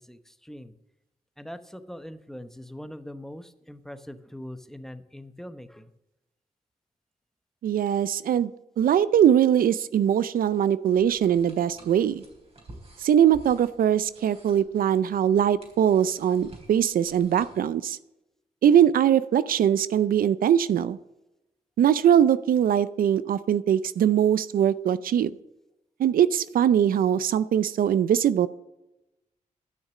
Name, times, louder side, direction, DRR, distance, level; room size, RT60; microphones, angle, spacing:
voice 1, 1.4-5.9, left 1 dB, 5° left, 10 dB, 0.9 m, -41 dB
voice 2, 7.6-8.5 8.8-12.2 13.0-18.0 18.6-21.0 21.8-25.3 26.0-28.5, right 9 dB, 80° right, 16 dB, 0.4 m, -21 dB
sound 1, 10.9-17.6, right 2 dB, 45° right, 3.7 m, -51 dB
12.0 x 6.5 x 7.4 m, 0.93 s
cardioid pair, 70°, 15 cm